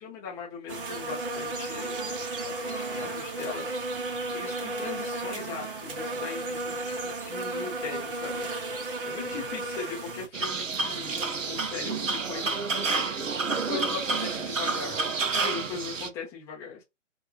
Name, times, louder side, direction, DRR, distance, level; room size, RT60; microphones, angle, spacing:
voice 1, 0.0-3.7 3.9-8.5 9.0-13.0 13.4-15.1 15.4-16.8, left 5 dB, 5° left, 0.7 m, -40 dB
sound 1, 0.7-10.3, right 2 dB, 45° right, 0.9 m, -34 dB
sound 2, 10.3-16.1, right 4 dB, 85° right, 0.6 m, -29 dB
2.6 x 2.5 x 2.3 m
figure-of-eight pair, 135°, 38 cm